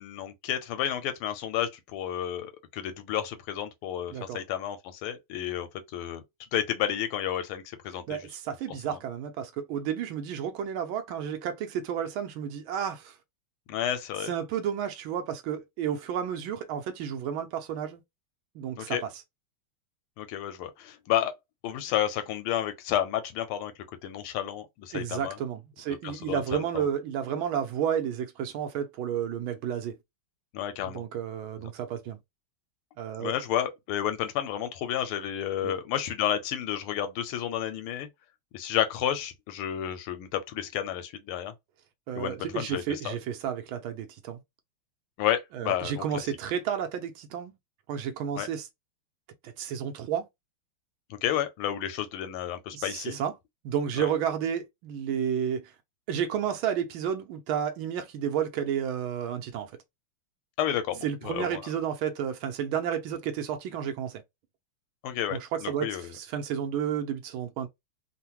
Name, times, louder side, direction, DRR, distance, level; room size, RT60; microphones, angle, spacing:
voice 1, 0.0-6.2 6.5-8.2 13.7-14.3 18.8-19.0 20.2-21.3 21.6-23.7 24.0-25.4 26.0-26.9 30.5-31.0 33.2-38.1 38.5-41.5 42.1-43.1 45.2-46.2 48.4-48.5 51.1-53.2 54.0-54.1 60.6-61.6 65.0-66.1, left 10 dB, 80° left, 1.5 m, -31 dB
voice 2, 8.1-13.2 14.3-18.0 18.5-19.1 24.9-29.9 30.8-32.2 33.0-33.3 35.6-35.7 42.1-44.4 45.5-47.5 47.9-48.7 49.4-50.2 52.7-53.3 53.6-55.7 56.1-59.7 61.0-64.2 65.3-67.7, right 8 dB, 75° right, 1.4 m, -31 dB
3.7 x 2.1 x 2.8 m
omnidirectional pair, 2.4 m